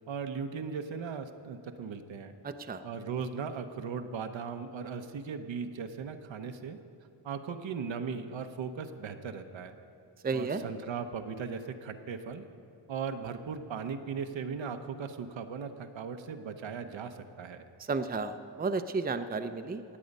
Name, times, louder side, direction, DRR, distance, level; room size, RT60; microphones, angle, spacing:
voice 1, 0.0-2.4 2.8-6.8 7.2-9.8 10.3-12.5 12.9-17.6, right 6 dB, 70° right, 7 dB, 0.9 m, -38 dB
voice 2, 2.4-2.8 10.2-10.6 17.9-19.8, right 4 dB, 20° right, 8 dB, 0.6 m, -32 dB
18.5 x 7.8 x 5.4 m, 2.7 s
cardioid pair, 70°, 47 cm